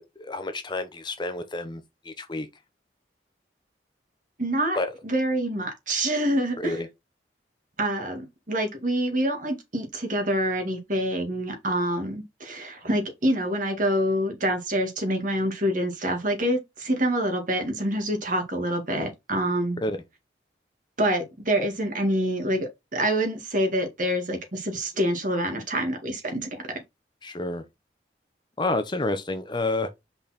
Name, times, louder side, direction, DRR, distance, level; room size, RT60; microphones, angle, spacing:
voice 1, 0.0-2.5 4.8-4.9 6.6-6.9 19.8-20.0 27.2-27.6 28.6-29.9, left 2 dB, 25° left, 0.9 m, -29 dB
voice 2, 4.4-4.8 5.0-6.8 7.8-19.8 21.0-26.7, right 1 dB, 45° right, 2.2 m, -26 dB
5.4 x 4.2 x 4.4 m
head